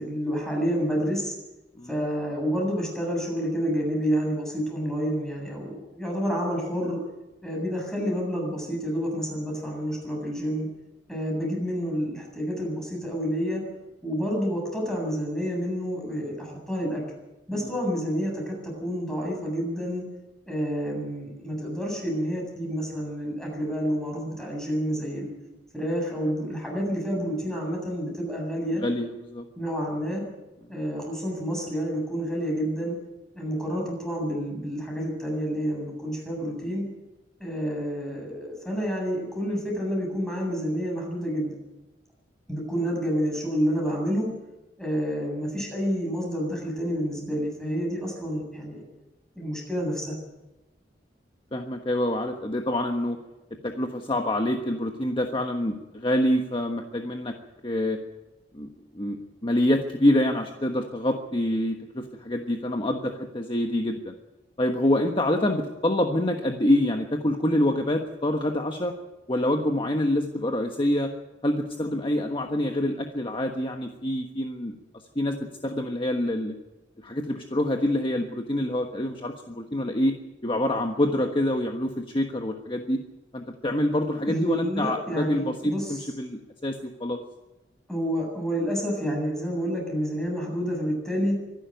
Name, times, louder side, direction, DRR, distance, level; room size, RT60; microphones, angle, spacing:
voice 1, 0.0-1.3 1.9-7.0 7.4-10.7 11.1-13.6 14.0-17.0 17.5-20.0 20.4-25.3 25.7-28.8 29.6-30.2 30.7-33.0 33.3-36.8 37.4-41.5 42.5-44.3 44.8-48.8 49.4-50.2 84.3-86.0 87.9-91.3, equal, 5° left, -1 dB, 7.6 m, -29 dB
voice 2, 28.8-29.4 51.5-53.2 53.6-57.3 57.6-58.0 58.5-58.7 58.9-64.1 64.6-68.9 69.3-71.1 71.4-74.7 75.1-75.4 75.6-76.5 77.0-80.1 80.4-83.0 83.3-87.2, left 1 dB, 30° left, 3 dB, 1.3 m, -26 dB
24.5 x 11.5 x 9.3 m, 1.0 s
head